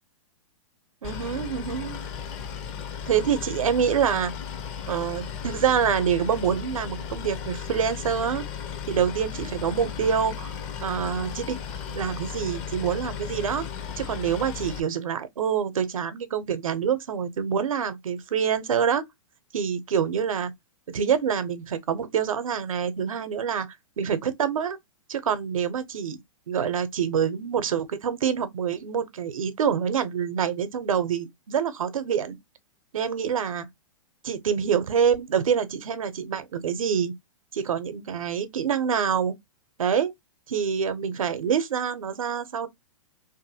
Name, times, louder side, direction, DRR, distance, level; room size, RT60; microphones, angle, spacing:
Boat Water vehicle, 1.0-14.8, left 7 dB, 40° left, 0.6 m, -35 dB
voice 1, 1.0-2.0 3.1-4.3 4.9-8.4 8.9-11.6 11.8-13.6 14.0-19.0 19.5-20.5 20.9-23.7 24.0-24.8 25.1-26.2 26.5-32.4 32.9-33.7 34.2-37.1 37.5-39.3 39.8-40.1 40.5-42.7, right 7 dB, 85° right, 0.6 m, -26 dB
2.6 x 2.6 x 2.7 m
hypercardioid pair, 125°, 17 cm